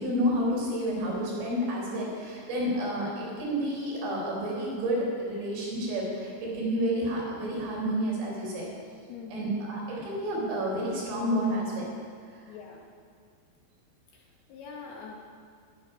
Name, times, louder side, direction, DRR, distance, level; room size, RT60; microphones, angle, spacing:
voice 1, 0.0-8.7 9.3-11.8, equal, 70° right, -3 dB, 6.3 m, -30 dB
voice 2, 9.1-9.6 12.4-12.8 14.1-15.1, left 5 dB, 70° left, -1 dB, 2.8 m, -44 dB
12.0 x 11.0 x 5.7 m, 2.1 s
omnidirectional pair, 5.1 m